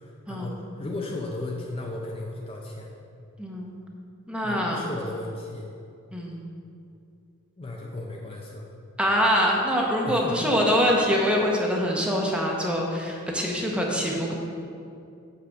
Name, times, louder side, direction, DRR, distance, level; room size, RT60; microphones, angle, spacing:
voice 1, 0.0-2.9 4.4-5.7 7.6-8.7 10.0-10.9, left 2 dB, 25° left, -2 dB, 0.6 m, -35 dB
voice 2, 3.4-3.7 4.3-4.8 6.1-6.4 9.0-14.3, equal, 5° right, -1 dB, 0.9 m, -24 dB
6.5 x 5.6 x 5.1 m, 2.5 s
head